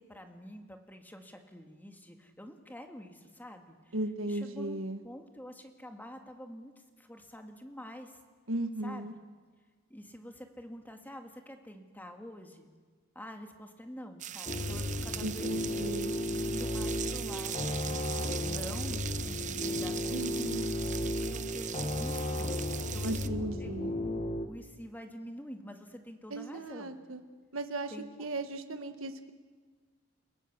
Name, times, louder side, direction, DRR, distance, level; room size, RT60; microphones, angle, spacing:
voice 1, 0.0-4.0 4.3-8.2 8.8-9.1 9.9-12.7 13.2-15.5 16.4-20.3 21.2-27.0 27.9-28.3, equal, 10° left, 4 dB, 2.0 m, -47 dB
voice 2, 3.9-5.0 8.5-9.1 15.2-16.1 20.1-20.7 23.0-23.9 26.3-27.2 27.5-27.9 28.2-29.3, right 1 dB, 85° right, 8 dB, 1.5 m, -36 dB
sound 1, 14.2-23.3, right 10 dB, 40° right, 0.7 m, -40 dB
sound 2, 14.5-24.5, left 1 dB, 30° left, 1.2 m, -34 dB
29.5 x 17.5 x 7.3 m, 1.5 s
head